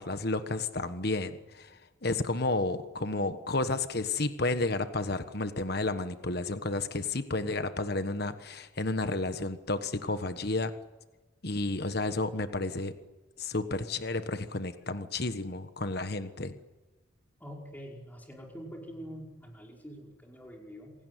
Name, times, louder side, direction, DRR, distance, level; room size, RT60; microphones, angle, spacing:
voice 1, 0.0-1.7 2.0-10.7 11.4-12.9 13.4-16.5, left 2 dB, 50° left, 10 dB, 1.3 m, -31 dB
voice 2, 17.4-20.9, equal, 10° left, 0 dB, 5.1 m, -45 dB
27.0 x 18.0 x 9.3 m, 1.2 s
head